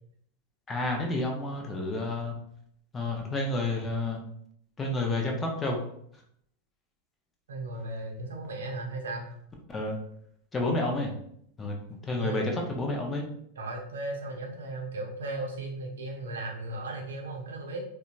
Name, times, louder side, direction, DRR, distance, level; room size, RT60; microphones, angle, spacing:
voice 1, 0.7-2.3 2.9-4.2 4.8-5.8 9.7-10.0 10.5-11.1 11.6-11.8 12.0-13.2, left 2 dB, 20° left, 1 dB, 0.6 m, -30 dB
voice 2, 7.5-9.3 12.2-12.5 13.6-17.8, right 2 dB, 65° right, 1 dB, 0.6 m, -36 dB
3.8 x 2.2 x 2.4 m, 0.68 s
figure-of-eight pair, 90°, 0 cm